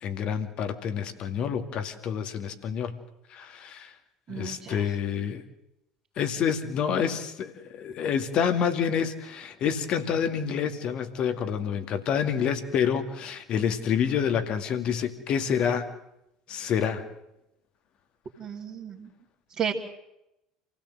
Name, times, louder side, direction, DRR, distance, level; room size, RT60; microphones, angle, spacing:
voice 1, 0.0-3.0 3.3-3.9 4.3-5.4 6.2-15.9 16.5-17.0, left 7 dB, 45° left, 8 dB, 2.2 m, -28 dB
voice 2, 4.3-4.8 18.4-19.1 19.6-19.7, right 8 dB, 40° right, -4 dB, 2.8 m, -33 dB
27.5 x 16.5 x 7.8 m, 0.87 s
figure-of-eight pair, 65°, 2 cm